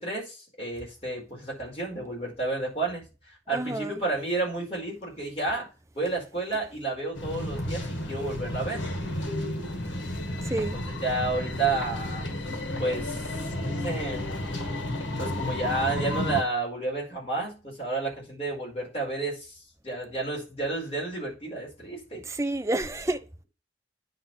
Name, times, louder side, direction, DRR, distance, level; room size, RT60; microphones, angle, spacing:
voice 1, 0.0-3.0 3.5-5.7 5.9-8.8 10.6-12.3 12.8-14.3 15.2-22.2, right 2 dB, 30° left, 4.7 m, -31 dB
voice 2, 3.5-4.0 10.4-10.8 22.1-23.2, right 2 dB, 15° right, 0.6 m, -29 dB
sound 1, 7.1-16.4, left 1 dB, 75° left, 2.1 m, -32 dB
9.4 x 3.8 x 6.2 m
head